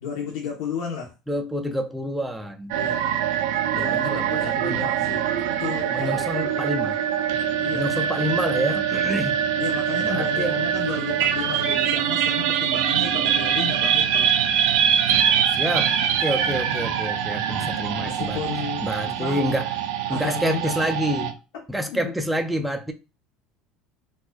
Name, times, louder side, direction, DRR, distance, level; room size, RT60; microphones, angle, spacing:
voice 1, 0.0-1.1 2.7-3.0 3.7-5.3 5.6-6.8 7.6-7.9 9.6-14.3 17.6-17.7 18.0-19.5 20.1-20.9 21.9-22.1, left 6 dB, 80° left, 0.8 m, -33 dB
voice 2, 1.3-2.7 3.7-4.9 5.9-6.9 7.7-9.4 10.0-10.6 15.3-18.4 18.8-19.7 20.1-21.3 21.7-22.9, equal, 5° right, 0.3 m, -28 dB
sound 1, 2.7-21.3, right 9 dB, 75° right, 0.4 m, -24 dB
4.2 x 2.3 x 2.2 m
cardioid pair, 170°, 0 cm